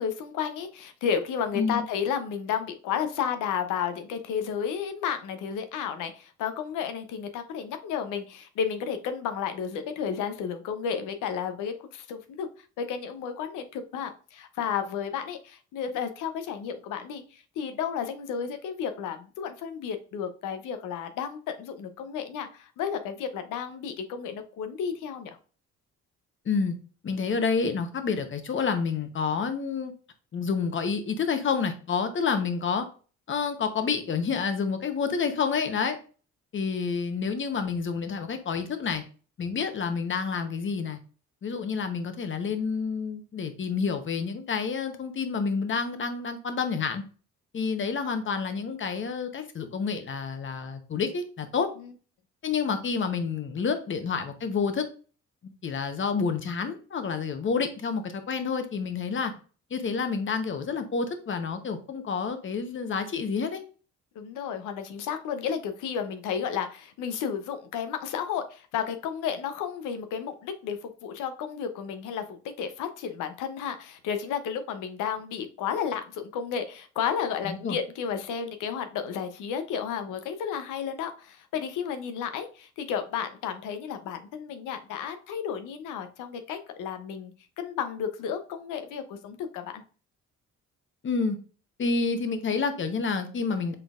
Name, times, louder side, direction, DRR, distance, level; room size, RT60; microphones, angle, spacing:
voice 1, 0.0-12.5 12.8-25.3 64.2-89.8, left 7 dB, 90° left, 8 dB, 0.7 m, -32 dB
voice 2, 26.5-26.8 27.0-29.9 30.3-32.9 33.3-36.0 36.5-39.0 39.4-41.0 41.4-47.0 47.5-51.7 52.4-54.9 55.4-59.3 59.7-63.6 77.4-77.8 91.0-91.4 91.8-93.7, left 5 dB, 40° left, 8 dB, 0.9 m, -29 dB
5.6 x 3.9 x 2.4 m, 0.38 s
cardioid pair, 90°, 30 cm